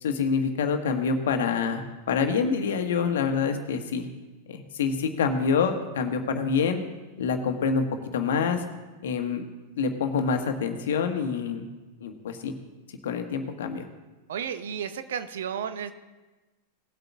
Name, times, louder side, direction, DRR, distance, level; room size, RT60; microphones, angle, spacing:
voice 1, 0.0-4.1 4.5-6.8 7.2-7.9 8.1-8.6 9.0-9.4 9.8-11.7 12.0-12.5 13.0-13.9, left 5 dB, 75° left, 6 dB, 1.3 m, -26 dB
voice 2, 14.3-15.9, right 8 dB, 75° right, 11 dB, 0.7 m, -32 dB
18.5 x 7.9 x 3.5 m, 1.2 s
hypercardioid pair, 100°, 0 cm